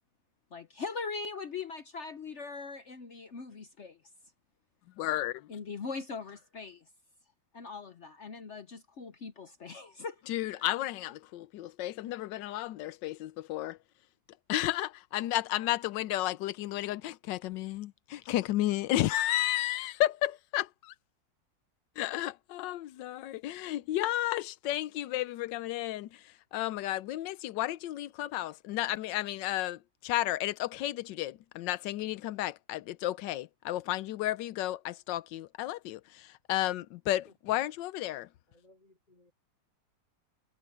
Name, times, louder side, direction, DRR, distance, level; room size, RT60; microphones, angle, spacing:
voice 1, 0.5-4.0 5.5-6.8 7.5-10.7, left 4 dB, 50° left, 0.9 m, -41 dB
voice 2, 5.0-5.4 10.3-13.8 14.5-20.9 22.0-26.2 26.5-38.3, left 14 dB, 80° left, 1.3 m, -32 dB
voice 3, 38.5-39.3, left 1 dB, 20° left, 6.6 m, -63 dB
omnidirectional pair, 2.0 m